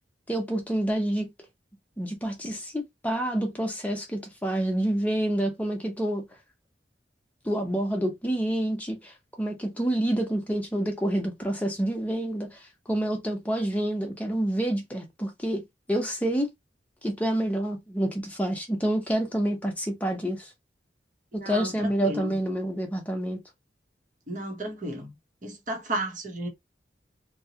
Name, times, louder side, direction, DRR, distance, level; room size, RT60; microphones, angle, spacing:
voice 1, 0.3-1.3 2.0-6.2 7.4-12.6 12.9-15.6 15.9-16.5 17.0-20.5 21.3-23.4, right 1 dB, 10° left, 0.8 m, -28 dB
voice 2, 21.3-22.3 24.3-25.1 25.4-26.5, right 1 dB, 45° right, 1.0 m, -33 dB
2.9 x 2.3 x 2.8 m
head